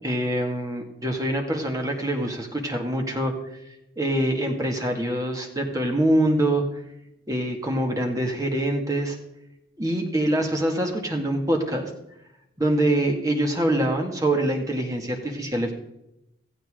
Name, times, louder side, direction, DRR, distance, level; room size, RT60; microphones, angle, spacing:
voice 1, 0.0-3.3 4.0-6.6 7.3-9.2 9.8-11.9 12.6-15.7, right 1 dB, 20° right, 2 dB, 2.0 m, -24 dB
16.5 x 15.0 x 3.8 m, 0.85 s
head